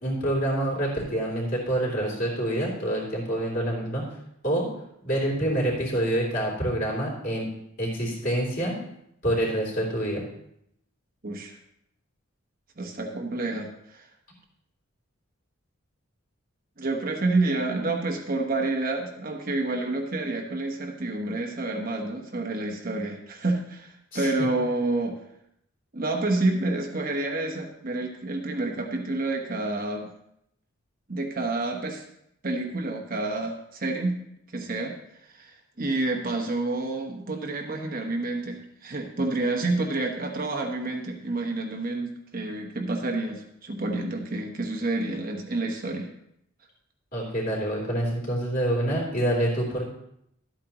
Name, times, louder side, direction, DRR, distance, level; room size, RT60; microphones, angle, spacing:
voice 1, 0.0-4.1 4.4-4.7 5.0-7.5 7.8-8.8 9.2-10.2 24.1-24.5 47.1-49.9, right 1 dB, 40° left, -3 dB, 3.3 m, -27 dB
voice 2, 11.2-11.6 12.8-14.1 16.8-25.2 25.9-30.1 31.1-32.0 32.4-34.2 34.5-35.0 35.3-46.1, right 2 dB, 40° right, 2 dB, 0.9 m, -29 dB
12.5 x 8.6 x 3.0 m, 0.76 s
head